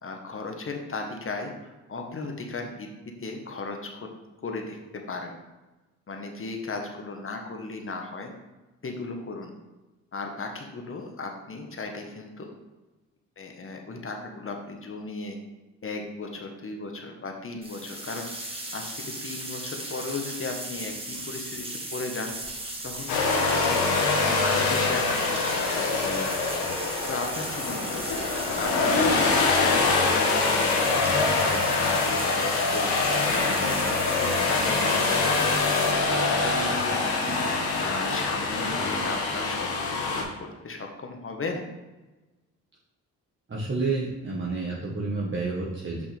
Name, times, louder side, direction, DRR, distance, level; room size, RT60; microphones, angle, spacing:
voice 1, 0.0-2.9 3.2-4.1 4.4-5.3 6.1-8.3 8.8-9.5 10.1-12.5 13.4-15.4 15.8-18.3 18.7-22.3 22.8-23.9 24.2-26.3 27.1-28.0 28.6-29.2 29.6-31.6 32.0-33.0 33.4-33.8 34.3-41.6, left 3 dB, 35° left, 3 dB, 1.5 m, -36 dB
sound 1, 17.6-35.9, right 1 dB, 15° right, 1.9 m, -37 dB
sound 2, 23.1-40.2, left 3 dB, 85° left, 1.4 m, -24 dB
voice 2, 43.5-46.0, right 3 dB, 35° right, -4 dB, 1.5 m, -29 dB
6.1 x 6.0 x 3.5 m, 1.1 s
supercardioid pair, 55°, 35 cm